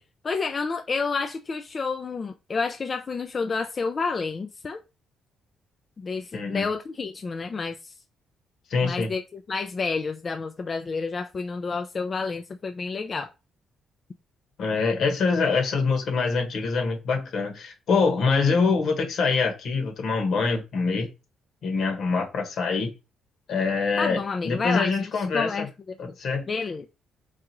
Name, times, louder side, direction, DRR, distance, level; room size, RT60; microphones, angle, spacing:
voice 1, 0.2-4.8 6.0-8.0 8.8-13.3 24.0-25.7 26.5-26.8, left 4 dB, 40° left, 0.4 m, -30 dB
voice 2, 6.3-6.7 8.7-9.1 14.6-21.1 21.6-22.9 23.5-25.5 26.0-26.4, left 4 dB, 70° left, 1.3 m, -24 dB
4.6 x 2.5 x 2.9 m
cardioid pair, 90°, 0 cm